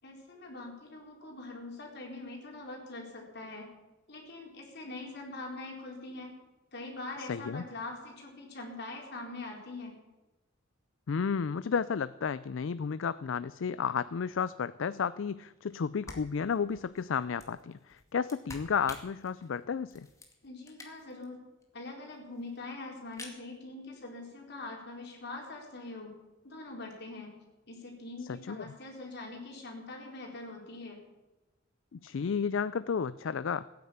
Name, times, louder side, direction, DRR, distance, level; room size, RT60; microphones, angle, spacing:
voice 1, 0.0-3.7 4.1-6.3 6.7-10.0 20.4-21.4 21.7-26.1 26.4-27.3 27.7-31.0, left 2 dB, 60° left, 0 dB, 4.2 m, -43 dB
voice 2, 7.3-7.6 11.1-20.1 28.5-28.7 31.9-33.7, left 6 dB, 75° left, 16 dB, 0.4 m, -32 dB
sound 1, 15.7-21.2 21.6-21.7 21.9-22.0 22.1-22.6 23.0-23.4, left 2 dB, 15° left, 2.2 m, -50 dB
16.5 x 9.8 x 8.7 m, 1.1 s
head